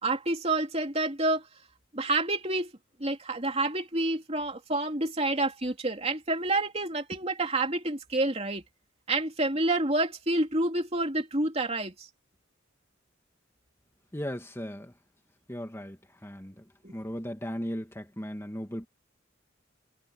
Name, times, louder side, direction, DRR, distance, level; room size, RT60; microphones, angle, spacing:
voice 1, 0.0-1.5 1.9-2.7 3.0-8.6 9.1-12.1 16.8-17.0, right 2 dB, 30° right, 3.0 m, -28 dB
voice 2, 14.1-14.9 15.5-16.6 16.9-18.9, equal, 15° left, 2.1 m, -37 dB
head